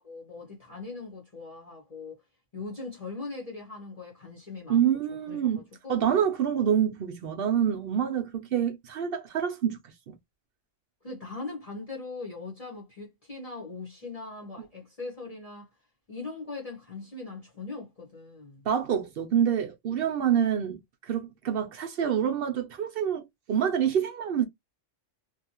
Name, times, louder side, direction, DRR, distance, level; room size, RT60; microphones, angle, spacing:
voice 1, 0.0-2.2 2.5-4.8 5.3-6.1 11.0-15.7 16.1-18.6, left 3 dB, 35° left, 0.9 m, -40 dB
voice 2, 4.7-9.8 10.1-10.2 18.7-24.4, right 9 dB, 60° right, 0.7 m, -27 dB
2.6 x 2.3 x 2.8 m
omnidirectional pair, 1.3 m